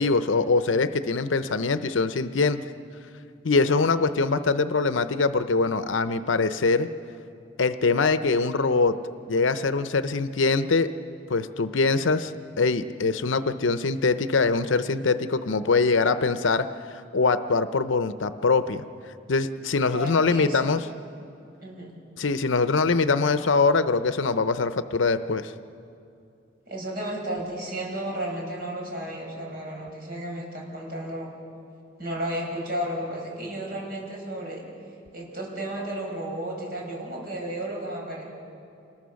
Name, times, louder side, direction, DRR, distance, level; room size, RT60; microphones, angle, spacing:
voice 1, 0.0-2.6 3.4-6.9 7.6-9.0 9.3-10.9 11.3-12.3 12.6-18.8 19.3-20.8 22.2-25.5, left 4 dB, 80° left, 11 dB, 0.7 m, -23 dB
voice 2, 19.9-20.7 21.6-21.9 26.7-31.3 32.0-34.6 35.1-38.2, right 1 dB, 50° right, -2 dB, 5.9 m, -33 dB
28.0 x 21.0 x 6.4 m, 2.5 s
head